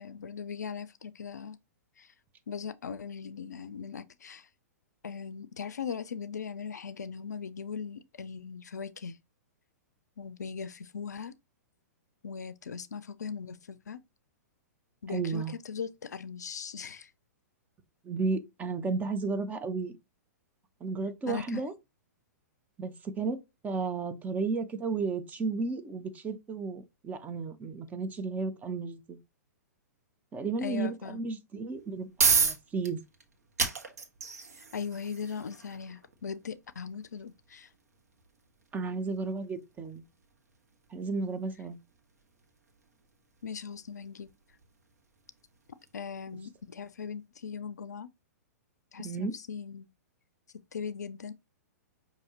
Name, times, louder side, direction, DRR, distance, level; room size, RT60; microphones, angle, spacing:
voice 1, 0.0-1.6 2.0-2.1 2.5-4.5 5.0-9.2 10.2-11.3 12.2-14.0 15.0-17.1 21.3-21.6 30.6-31.2 34.5-37.7 43.4-44.3 45.9-48.1 48.9-49.9 50.7-51.3, left 6 dB, 75° left, 0.4 m, -39 dB
voice 2, 15.1-15.5 18.0-19.9 20.8-21.7 22.8-29.2 30.3-33.0 38.7-40.0 40.9-41.7 49.0-49.3, right 4 dB, 15° right, 0.7 m, -33 dB
sound 1, 31.7-46.6, right 5 dB, 70° right, 1.3 m, -35 dB
6.1 x 2.8 x 2.9 m
figure-of-eight pair, 110°, 9 cm